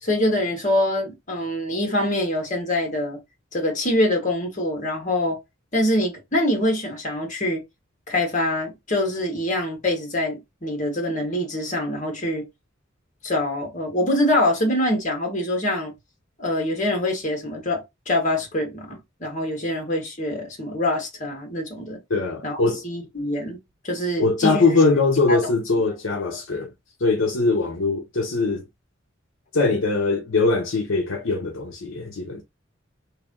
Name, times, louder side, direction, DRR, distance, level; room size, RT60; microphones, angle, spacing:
voice 1, 0.0-3.2 3.5-5.4 5.7-7.6 8.1-12.5 13.2-15.9 16.4-22.0 22.4-23.6 23.8-24.6 25.3-25.4, left 1 dB, 40° left, 1.6 m, -24 dB
voice 2, 22.1-22.8 24.2-26.7 27.0-28.6 29.5-32.4, left 3 dB, 70° left, 0.7 m, -21 dB
3.2 x 2.7 x 3.7 m
head